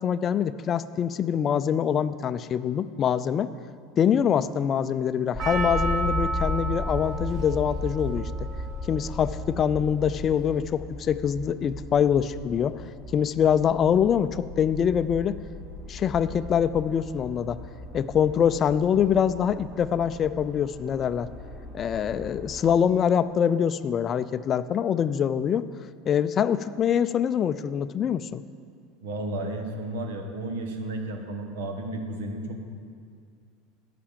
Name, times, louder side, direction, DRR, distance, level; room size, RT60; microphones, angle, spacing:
voice 1, 0.0-3.5 4.0-8.5 8.9-12.8 13.1-15.4 15.9-17.6 17.9-21.3 21.7-25.6 26.1-28.4, left 8 dB, 35° left, 14 dB, 0.4 m, -24 dB
sound 1, 5.3-22.8, left 1 dB, 25° right, 2.6 m, -36 dB
Percussion, 5.4-9.8 10.4-10.5, right 3 dB, 45° right, 1.3 m, -33 dB
voice 2, 29.0-32.6, right 1 dB, 80° right, 4 dB, 1.4 m, -33 dB
11.5 x 5.9 x 7.4 m, 2.2 s
supercardioid pair, 110°, 0 cm